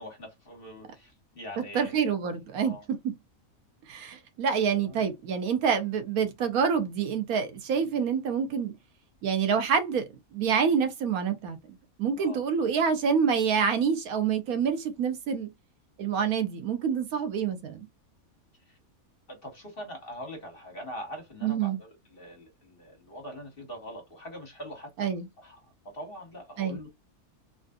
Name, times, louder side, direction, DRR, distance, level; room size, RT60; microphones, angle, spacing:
voice 1, 0.0-2.0 2.6-2.8 4.8-5.0 12.2-12.4 18.7-18.8 19.3-25.6 25.8-26.9, equal, 40° left, 1.6 m, -43 dB
voice 2, 1.7-3.1 3.9-8.7 9.2-11.6 12.0-15.5 16.0-17.9 21.4-21.8 25.0-25.3 26.6-26.8, right 6 dB, 85° right, 1.3 m, -27 dB
3.8 x 2.5 x 2.3 m
omnidirectional pair, 1.5 m